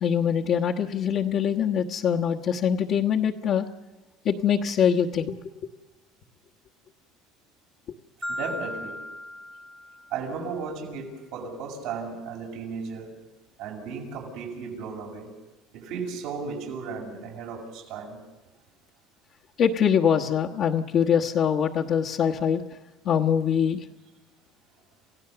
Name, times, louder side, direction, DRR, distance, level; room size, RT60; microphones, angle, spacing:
voice 1, 0.0-3.7 4.2-5.4 19.6-22.6 23.0-23.8, left 8 dB, 55° left, -3 dB, 1.3 m, -23 dB
Marimba xylophone, 8.2-10.4, left 1 dB, ahead, 1.2 m, -37 dB
voice 2, 8.3-9.0 10.1-13.1 13.6-15.3 15.7-18.2, right 5 dB, 80° right, -1 dB, 6.8 m, -35 dB
29.0 x 16.0 x 6.9 m, 1.1 s
cardioid pair, 120°, 0 cm